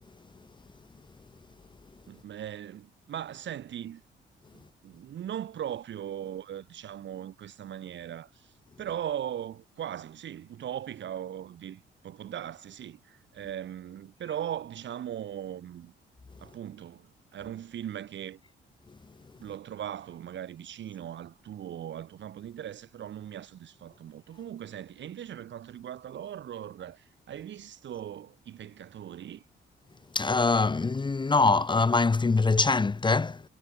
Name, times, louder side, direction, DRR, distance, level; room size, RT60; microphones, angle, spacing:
voice 1, 2.1-4.0 4.5-15.9 16.4-18.4 19.4-29.4, right 10 dB, 65° right, 4.6 m, -39 dB
voice 2, 30.1-33.4, left 3 dB, 25° left, 1.3 m, -23 dB
cardioid pair, 90°, 20 cm